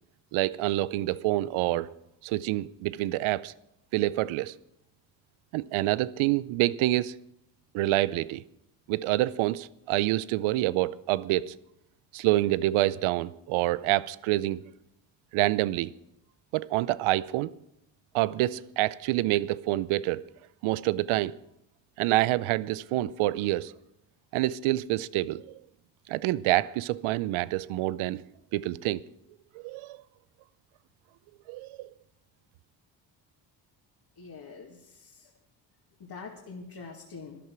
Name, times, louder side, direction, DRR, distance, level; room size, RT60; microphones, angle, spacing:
voice 1, 0.3-1.9 2.2-3.5 3.9-4.5 5.5-7.1 7.7-8.4 8.9-11.5 12.1-14.6 15.3-15.9 16.5-17.5 18.1-20.2 20.6-21.3 22.0-23.7 24.3-25.6 26.1-28.2 28.5-29.0 29.5-30.0 31.5-31.9, right 16 dB, 80° right, 0.6 m, -27 dB
voice 2, 34.2-35.3 36.0-37.4, left 4 dB, 50° left, 2.4 m, -44 dB
13.5 x 11.0 x 6.1 m
supercardioid pair, 65°, 48 cm